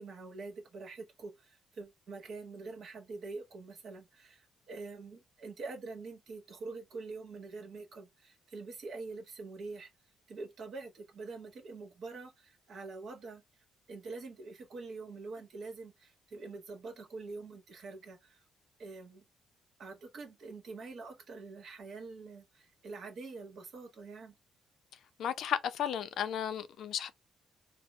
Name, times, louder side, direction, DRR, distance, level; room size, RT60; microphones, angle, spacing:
voice 1, 0.0-9.9 10.3-13.4 13.9-18.4 18.8-19.2 19.8-24.3, right 3 dB, 65° right, 1.2 m, -45 dB
voice 2, 25.2-27.1, left 9 dB, 70° left, 0.5 m, -34 dB
3.5 x 2.1 x 3.1 m
cardioid pair, 90°, 0 cm